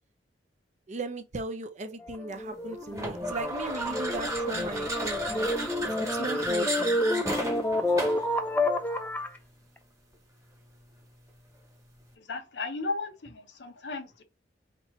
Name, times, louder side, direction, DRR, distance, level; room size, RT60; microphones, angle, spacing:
voice 1, 0.9-5.5 6.0-7.0, right 2 dB, 40° right, 0.5 m, -37 dB
sound 1, 2.0-9.4, left 1 dB, 10° left, 0.5 m, -29 dB
sound 2, 2.9-8.3, right 1 dB, 20° right, 1.1 m, -33 dB
voice 2, 12.2-14.2, left 3 dB, 80° left, 0.7 m, -35 dB
3.0 x 2.8 x 4.3 m
head